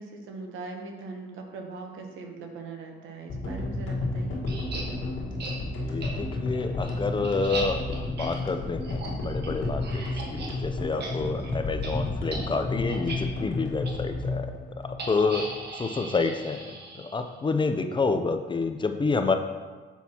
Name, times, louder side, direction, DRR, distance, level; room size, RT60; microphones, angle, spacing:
voice 1, 0.0-4.4, right 3 dB, 85° right, 3 dB, 0.9 m, -40 dB
sound 1, 3.3-15.6, left 2 dB, 80° left, 1.5 m, -32 dB
sound 2, 4.5-4.8 5.4-5.5 6.0-6.1 6.5-10.5 10.8-11.1 11.4-11.5 11.8-11.9 12.3-12.4 12.9-13.2 13.8-13.9 15.0-17.3, right 3 dB, 55° right, 1.3 m, -38 dB
voice 2, 5.8-14.5 15.1-15.4 15.7-19.3, left 4 dB, 25° left, 7 dB, 0.5 m, -28 dB
7.2 x 5.9 x 2.9 m, 1.3 s
cardioid pair, 90°, 20 cm